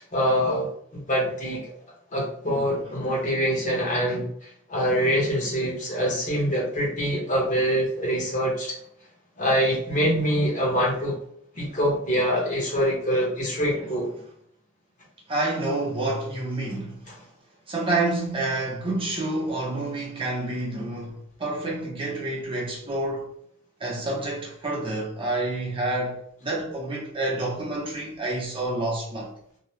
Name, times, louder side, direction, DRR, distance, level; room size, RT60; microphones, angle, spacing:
voice 1, 0.0-1.7 2.1-8.7 9.4-11.2 11.5-14.1, equal, 40° left, 1.1 m, -25 dB
voice 2, 15.3-17.0 17.7-23.3 23.8-29.3, right 2 dB, 25° right, 0.7 m, -28 dB
2.8 x 2.1 x 3.1 m
head